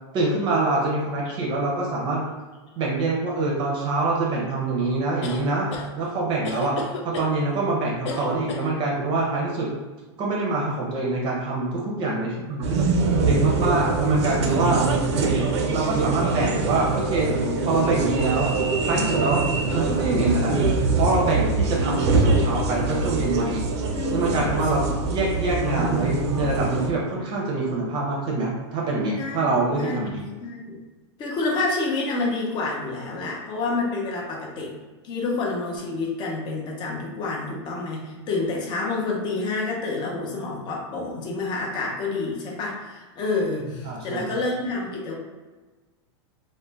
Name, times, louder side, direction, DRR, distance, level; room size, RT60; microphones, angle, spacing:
voice 1, 0.1-2.2 2.8-5.7 6.0-6.8 7.0-9.7 10.2-12.9 13.2-14.9 15.7-17.3 17.6-18.5 18.8-19.4 19.7-20.6 20.9-23.6 24.1-30.3 43.8-44.3, right 3 dB, 35° right, -3 dB, 0.6 m, -25 dB
sound 1, 5.2-5.9 6.4-7.3 8.1-8.7, left 4 dB, 75° left, 0.5 m, -33 dB
sound 2, 12.6-26.9, right 3 dB, 75° right, 0.5 m, -23 dB
voice 2, 20.0-20.5 23.9-24.5 24.9-25.0 29.2-30.0 30.4-30.8 31.2-34.7 35.0-45.1, left 3 dB, 30° left, -2 dB, 0.6 m, -28 dB
2.5 x 2.1 x 3.1 m, 1.3 s
supercardioid pair, 135°, 15 cm